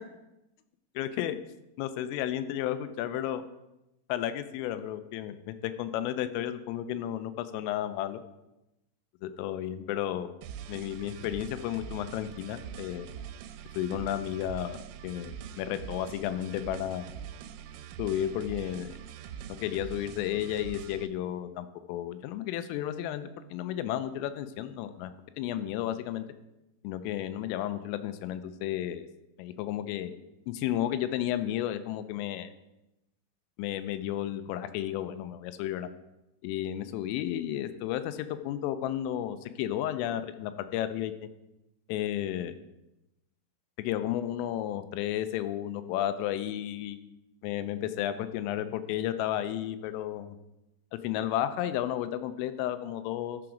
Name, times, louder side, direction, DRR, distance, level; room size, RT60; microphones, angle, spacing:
voice 1, 1.0-1.4 1.8-3.4 4.1-8.2 9.2-10.3 10.7-13.1 13.8-17.1 18.0-18.9 19.6-25.1 25.4-26.3 26.8-29.1 29.4-30.1 30.5-32.5 33.6-35.9 36.4-41.1 41.9-42.5 43.8-47.0 47.4-50.4 51.0-53.4, left 11 dB, 85° left, 11 dB, 3.2 m, -32 dB
sound 1, 10.4-21.1, right 9 dB, 85° right, 3.1 m, -43 dB
14.0 x 4.8 x 5.0 m, 0.92 s
omnidirectional pair, 5.7 m